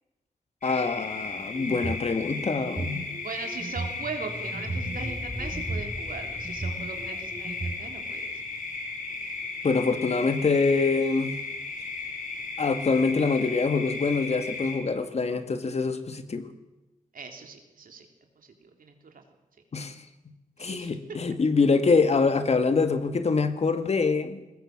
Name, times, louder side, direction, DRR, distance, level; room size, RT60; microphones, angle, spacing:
sound 1, 0.6-14.8, left 3 dB, 70° left, 6.0 m, -35 dB
voice 1, 0.6-3.1 9.6-11.3 12.6-16.5 19.7-20.0 20.6-24.6, left 4 dB, 50° left, 9 dB, 1.9 m, -25 dB
sound 2, 1.4-2.1 2.6-4.0 4.5-5.8 6.4-7.7, right 3 dB, 40° right, 4.7 m, -35 dB
voice 2, 3.2-8.3 17.1-18.1 18.4-18.5 18.8-19.2 20.6-20.9, right 5 dB, 85° right, 4 dB, 3.6 m, -40 dB
sound 3, 3.5-8.7, left 1 dB, 20° left, 2.4 m, -41 dB
21.5 x 20.0 x 7.9 m, 1.0 s
wide cardioid pair, 135°, 14 cm